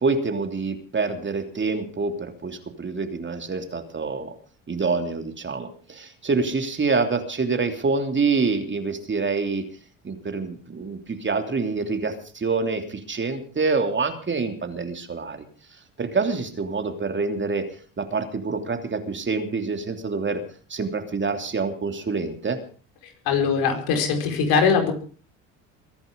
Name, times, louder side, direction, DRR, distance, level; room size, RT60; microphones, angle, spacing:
voice 1, 0.0-4.3 4.7-9.6 10.0-15.4 16.0-17.7 18.0-20.4 20.7-22.6, right 4 dB, 30° right, 6 dB, 3.1 m, -26 dB
voice 2, 23.2-24.9, left 6 dB, 70° left, 5 dB, 4.8 m, -21 dB
23.0 x 10.5 x 5.3 m, 0.41 s
hypercardioid pair, 65°, 39 cm